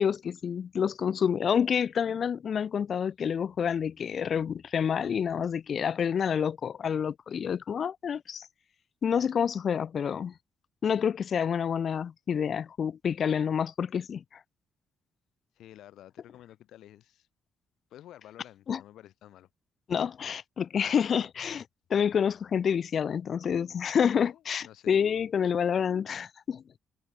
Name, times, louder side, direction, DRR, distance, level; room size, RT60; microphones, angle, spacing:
voice 1, 0.0-8.5 9.0-10.3 10.8-14.2 18.7-18.8 19.9-21.7 21.9-26.6, left 7 dB, 55° left, 0.3 m, -28 dB
voice 2, 15.5-17.3 17.9-19.5 24.1-25.0, left 13 dB, 80° left, 1.9 m, -51 dB
cardioid pair, 90°, 0 cm